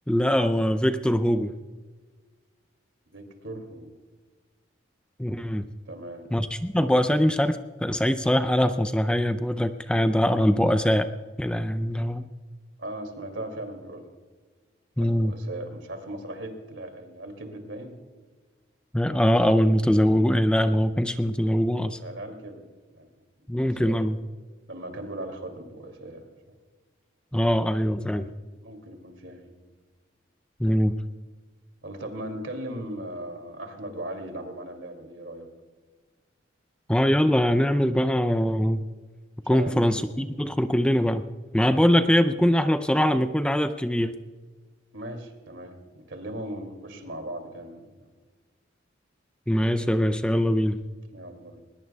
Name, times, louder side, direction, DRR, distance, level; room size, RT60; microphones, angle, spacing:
voice 1, 0.1-1.5 5.2-5.7 6.3-11.1 11.4-12.3 15.0-15.3 18.9-22.0 23.5-24.2 27.3-28.3 30.6-31.0 36.9-38.8 39.5-41.2 41.5-44.1 49.5-50.8, equal, 5° left, 10 dB, 0.4 m, -22 dB
voice 2, 3.1-3.9 5.9-6.3 12.8-14.1 15.0-18.0 22.0-22.7 22.9-23.1 23.8-24.0 24.7-26.3 28.6-29.5 31.8-35.5 39.4-39.8 44.9-48.1 51.1-51.6, right 1 dB, 80° right, 5 dB, 2.6 m, -38 dB
21.5 x 20.0 x 2.3 m, 1.4 s
head